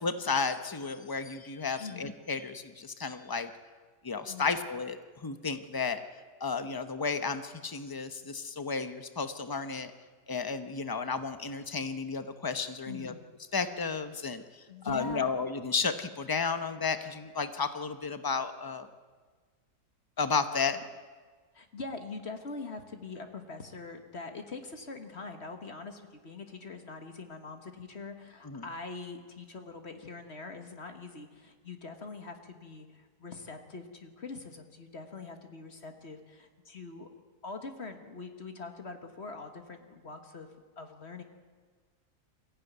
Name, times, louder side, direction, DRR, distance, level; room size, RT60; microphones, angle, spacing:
voice 1, 0.0-3.5 4.0-6.0 6.4-9.9 10.3-13.1 13.5-18.9 20.2-20.8 28.4-28.6, left 5 dB, 20° left, 9 dB, 0.7 m, -33 dB
voice 2, 1.8-2.1 4.3-4.5 12.9-13.3 14.7-15.3 21.5-37.1 37.4-41.2, left 3 dB, 40° left, 6 dB, 1.7 m, -43 dB
23.0 x 15.0 x 9.3 m, 1.5 s
omnidirectional pair, 1.7 m